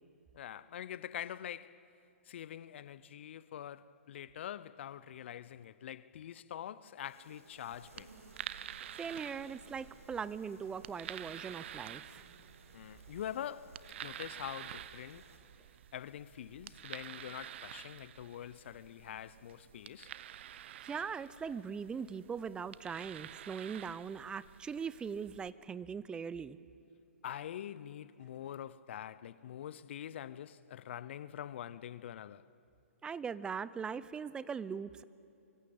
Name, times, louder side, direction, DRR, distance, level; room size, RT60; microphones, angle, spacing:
voice 1, 0.3-1.9 2.3-8.1 12.7-15.3 15.9-20.1 27.2-32.5, left 10 dB, 55° left, 0.8 m, -45 dB
sound 1, 7.0-15.4, right 2 dB, 80° right, 7.0 m, -60 dB
sound 2, 7.7-25.5, right 11 dB, 50° right, 0.8 m, -49 dB
voice 2, 9.0-12.2 20.8-26.6 33.0-35.0, right 6 dB, 10° right, 0.6 m, -40 dB
24.5 x 24.0 x 8.7 m
hypercardioid pair, 130°, 8 cm